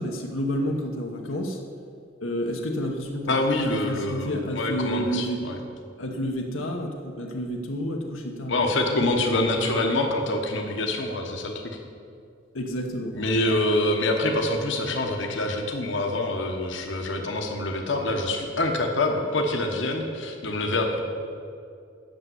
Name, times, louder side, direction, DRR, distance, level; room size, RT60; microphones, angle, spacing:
voice 1, 0.0-1.6 2.2-5.4 6.0-8.6 8.9-9.5 12.5-13.2, equal, 90° left, 2 dB, 1.1 m, -30 dB
voice 2, 3.3-5.6 8.5-11.7 13.1-21.0, left 2 dB, 65° left, 2 dB, 1.1 m, -26 dB
8.7 x 6.8 x 7.8 m, 2.3 s
head